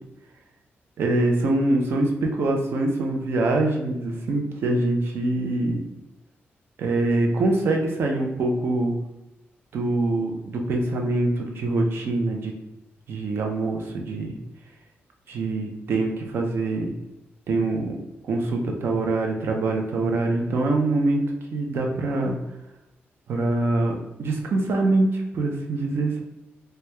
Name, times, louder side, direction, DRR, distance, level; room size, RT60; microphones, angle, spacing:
voice 1, 1.0-5.8 6.8-9.0 9.7-12.5 13.1-14.3 15.3-16.9 17.5-17.9 18.2-21.2 21.5-22.3 23.3-23.9 24.2-26.2, right 2 dB, 65° right, 2 dB, 0.5 m, -24 dB
3.0 x 2.3 x 3.2 m, 0.93 s
wide cardioid pair, 170°, 4 cm